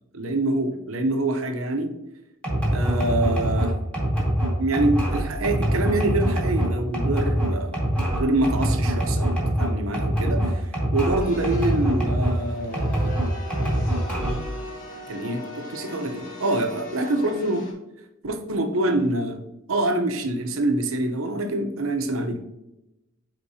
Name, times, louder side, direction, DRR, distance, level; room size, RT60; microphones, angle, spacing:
voice 1, 0.1-1.9 2.7-3.8 4.6-7.8 8.2-10.7 10.9-13.1 14.2-14.4 15.1-17.7 18.2-19.4 19.7-22.4, right 2 dB, 75° right, 6 dB, 0.9 m, -25 dB
sound 1, 2.4-12.4 12.7-14.5, right 1 dB, 5° left, 2.1 m, -24 dB
sound 2, 11.2-17.7, left 1 dB, 40° left, 1.8 m, -39 dB
9.5 x 3.9 x 2.8 m, 0.92 s
head